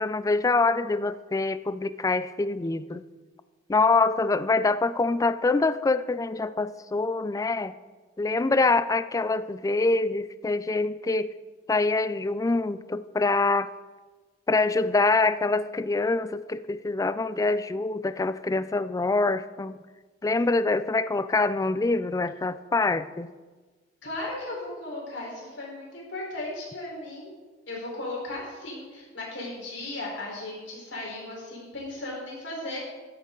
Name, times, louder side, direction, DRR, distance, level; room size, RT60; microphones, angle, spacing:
voice 1, 0.0-3.0 3.7-7.7 8.2-11.3 11.7-13.7 14.5-19.8 20.2-23.3, left 3 dB, 20° left, 15 dB, 0.3 m, -25 dB
voice 2, 24.0-27.3 27.7-32.8, left 2 dB, 75° left, -3 dB, 4.3 m, -36 dB
13.5 x 10.5 x 3.8 m, 1.3 s
head